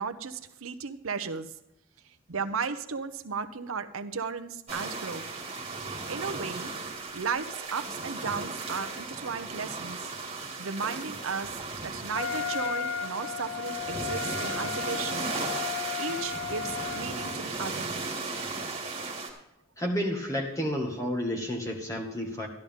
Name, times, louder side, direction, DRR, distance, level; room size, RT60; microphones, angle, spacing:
voice 1, 0.0-1.5 2.3-5.2 6.1-6.7 7.1-10.1 10.6-15.3 15.9-18.0, right 5 dB, 90° right, 8 dB, 0.8 m, -35 dB
sound 1, 4.7-19.3, right 3 dB, 30° right, 2.3 m, -36 dB
Wind instrument woodwind instrument, 12.1-17.4, left 8 dB, 85° left, 0.9 m, -35 dB
voice 2, 19.8-22.5, equal, 15° left, 0 dB, 1.9 m, -31 dB
13.0 x 11.5 x 3.7 m, 0.87 s
head